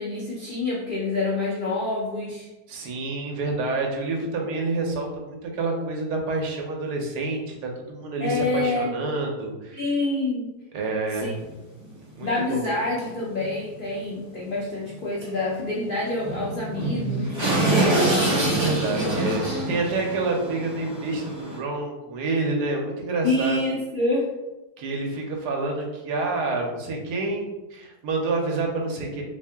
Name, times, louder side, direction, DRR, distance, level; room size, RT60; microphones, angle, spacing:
voice 1, 0.0-2.5 8.2-8.9 9.7-10.5 11.2-11.3 12.2-17.5 23.2-24.3, left 2 dB, 75° left, -5 dB, 0.4 m, -27 dB
voice 2, 2.7-9.8 10.7-11.4 12.2-12.7 17.7-23.6 24.8-29.2, right 3 dB, 80° right, 1 dB, 1.3 m, -28 dB
sound 1, 11.3-11.4 11.8-11.9 12.6-12.7 13.0-13.1 13.4-13.5 15.2-15.3 15.6-15.7 16.2-21.6, right 1 dB, 35° right, 0.4 m, -25 dB
3.0 x 2.7 x 3.4 m, 1.1 s
omnidirectional pair, 1.7 m